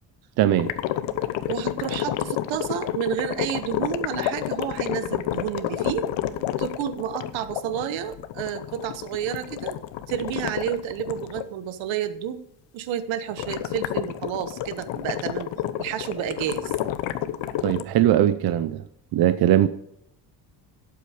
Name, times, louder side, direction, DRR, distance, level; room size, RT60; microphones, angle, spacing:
voice 1, 0.4-0.7 17.6-18.8 19.1-19.7, right 12 dB, 55° right, 12 dB, 0.6 m, -20 dB
sound 1, 0.6-11.5 13.4-17.8, left 12 dB, 80° left, 0.9 m, -30 dB
voice 2, 1.5-6.1 6.6-9.8 10.1-12.5 12.7-15.5 15.8-16.7, right 9 dB, 85° right, 12 dB, 1.2 m, -30 dB
12.0 x 8.6 x 5.0 m, 0.73 s
cardioid pair, 170°, 45 cm